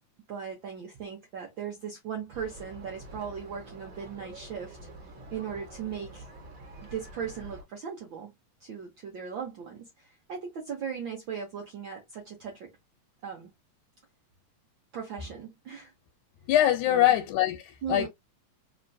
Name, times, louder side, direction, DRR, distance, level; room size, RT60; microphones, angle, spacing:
voice 1, 0.3-4.8 5.3-6.3 6.9-8.3 8.6-12.7 13.2-13.5 14.9-15.9 16.9-17.1 17.8-18.1, right 7 dB, 90° right, 1.0 m, -38 dB
sound 1, 2.3-7.6, right 1 dB, 40° right, 1.3 m, -47 dB
voice 2, 16.5-18.1, left 12 dB, 85° left, 2.2 m, -23 dB
4.3 x 2.9 x 2.7 m
omnidirectional pair, 3.4 m